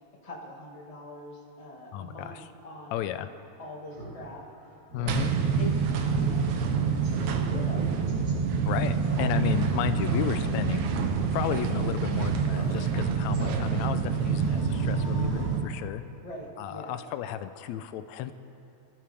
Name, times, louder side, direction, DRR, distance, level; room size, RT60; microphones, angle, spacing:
voice 1, 0.2-3.0 3.6-4.4 5.0-8.0 16.2-16.9, left 1 dB, 15° left, -3 dB, 1.5 m, -43 dB
voice 2, 1.9-2.5 2.9-3.3 4.9-5.3 8.7-10.9 11.3-16.0 16.6-18.3, left 11 dB, 80° left, 10 dB, 1.9 m, -32 dB
Speech synthesizer, 3.9-4.1 4.5-4.6 4.9-5.2 5.6-5.7 6.1-6.3 6.6-6.7 7.0-7.3 8.1-8.3 9.0-9.6 10.0-10.6 10.9-11.1 11.7-11.9 12.5-13.0 13.3-13.9, right 2 dB, 65° right, 5.4 m, -39 dB
sound 1, 5.1-15.6, right 6 dB, 90° right, 2.4 m, -27 dB
sound 2, 10.3-13.0 13.4-16.3, right 1 dB, 30° right, 3.1 m, -43 dB
26.0 x 14.5 x 3.5 m, 2.7 s
omnidirectional pair, 3.4 m